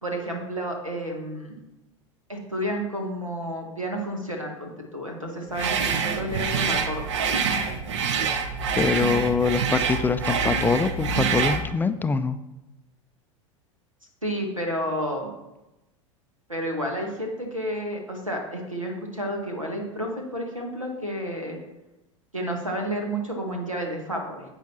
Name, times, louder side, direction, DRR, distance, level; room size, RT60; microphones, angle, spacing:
voice 1, 0.0-1.6 2.3-7.3 14.2-15.3 16.5-21.6 22.3-24.4, equal, 90° right, 2 dB, 1.5 m, -31 dB
sound 1, 5.5-11.7, right 5 dB, 65° right, 0.8 m, -26 dB
voice 2, 8.8-12.4, left 4 dB, 10° left, 11 dB, 0.3 m, -24 dB
10.0 x 8.0 x 2.9 m, 0.96 s
figure-of-eight pair, 80°, 17 cm